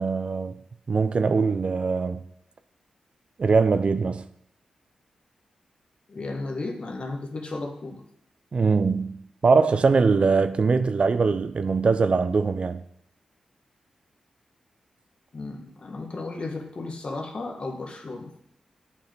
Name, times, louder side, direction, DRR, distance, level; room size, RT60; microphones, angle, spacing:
voice 1, 0.0-2.2 3.4-4.2 8.5-12.8, right 4 dB, 55° right, 0.5 m, -22 dB
voice 2, 6.1-8.0 15.3-18.3, left 3 dB, 50° left, 1.4 m, -34 dB
7.3 x 5.4 x 4.5 m
supercardioid pair, 40°, 2 cm